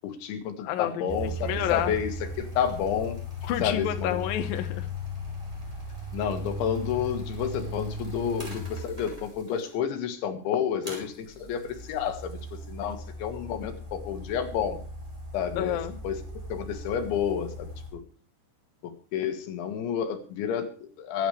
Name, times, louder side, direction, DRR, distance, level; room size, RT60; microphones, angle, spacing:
voice 1, 0.0-1.3 1.7-3.2 3.6-4.2 6.1-12.4 12.7-14.8 15.3-15.8 16.0-16.2 16.5-18.0 18.8-21.3, left 8 dB, 90° left, 7 dB, 4.0 m, -30 dB
voice 2, 0.6-2.0 3.4-4.9 15.6-16.0, left 10 dB, 70° left, 8 dB, 2.5 m, -30 dB
sound 1, 1.1-9.7 10.8-17.9, left 1 dB, 10° right, 5.2 m, -37 dB
24.0 x 10.0 x 3.3 m, 0.39 s
omnidirectional pair, 5.2 m